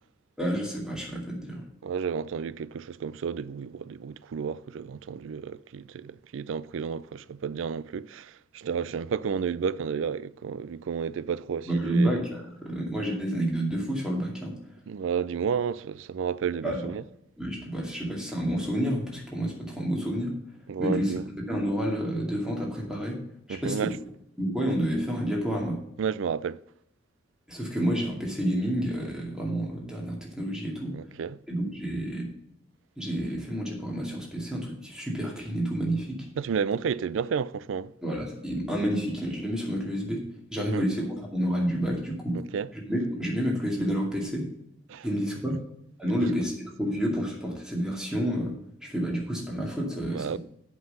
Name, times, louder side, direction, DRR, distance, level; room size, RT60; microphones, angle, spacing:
voice 1, 0.4-1.6 11.7-14.5 16.6-16.9 17.4-20.3 20.8-21.1 21.5-23.2 23.5-23.9 24.4-25.8 27.5-30.9 31.5-32.3 33.0-36.2 38.0-40.2 40.5-42.4 42.9-44.5 45.0-45.6 46.0-46.5 46.8-48.5 48.8-50.4, equal, 5° right, 2.3 m, -29 dB
voice 2, 1.8-12.2 14.9-17.0 20.7-21.2 23.5-24.0 26.0-26.6 30.9-31.4 36.4-37.9 40.6-40.9 42.3-42.7 44.9-45.1 45.5-45.6 46.1-46.3 50.1-50.4, right 6 dB, 75° right, 0.4 m, -31 dB
7.9 x 5.6 x 6.7 m
head